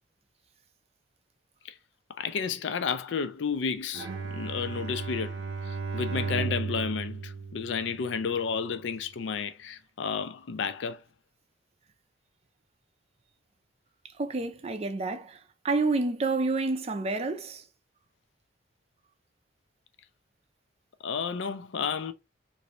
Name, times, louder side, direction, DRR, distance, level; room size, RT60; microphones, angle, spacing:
voice 1, 2.2-5.4 5.6-11.0 21.0-22.1, left 6 dB, 80° left, 0.5 m, -32 dB
Bowed string instrument, 3.9-8.3, right 4 dB, 90° right, 0.6 m, -34 dB
voice 2, 14.2-15.4 15.6-17.6, right 3 dB, 35° right, 0.4 m, -28 dB
3.1 x 2.6 x 2.9 m
head